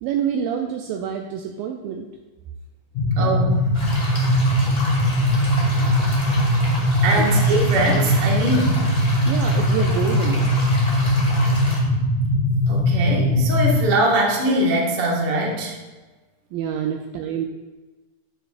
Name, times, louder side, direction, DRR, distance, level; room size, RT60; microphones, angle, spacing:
voice 1, 0.0-2.1 7.1-7.3 9.3-10.7 16.5-17.5, right 8 dB, 80° right, 3 dB, 2.1 m, -27 dB
sound 1, 3.0-13.8, equal, 80° left, 1.7 m, -20 dB
voice 2, 3.2-3.6 7.0-8.9 12.7-15.7, right 1 dB, 50° right, -2 dB, 2.0 m, -22 dB
sound 2, 3.7-11.8, left 1 dB, 15° left, 1.5 m, -32 dB
11.0 x 9.2 x 2.5 m, 1.2 s
omnidirectional pair, 4.5 m